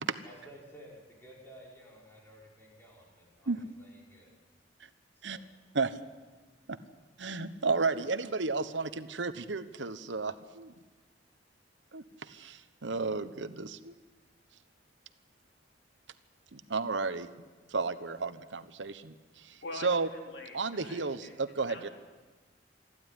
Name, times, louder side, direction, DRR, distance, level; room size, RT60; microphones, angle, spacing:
voice 1, 0.2-4.3 5.1-5.4 9.1-9.2, equal, 15° left, -2 dB, 5.0 m, -54 dB
voice 2, 7.2-10.7 11.9-13.9 16.5-17.3 17.7-20.1 20.5-21.9, right 4 dB, 90° right, 12 dB, 1.1 m, -33 dB
voice 3, 19.6-21.3 21.7-21.9, left 2 dB, 70° left, 2 dB, 3.9 m, -44 dB
27.0 x 12.0 x 9.9 m, 1.3 s
head